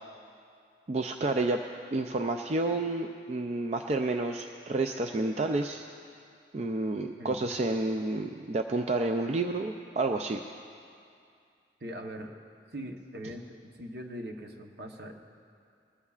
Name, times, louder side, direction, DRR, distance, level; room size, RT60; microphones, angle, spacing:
voice 1, 0.9-1.6 1.9-5.8 6.5-10.4, right 2 dB, 40° right, 5 dB, 0.4 m, -30 dB
voice 2, 11.8-12.3 12.7-15.2, equal, 65° right, 3 dB, 1.0 m, -41 dB
20.5 x 14.0 x 2.4 m, 2.4 s
head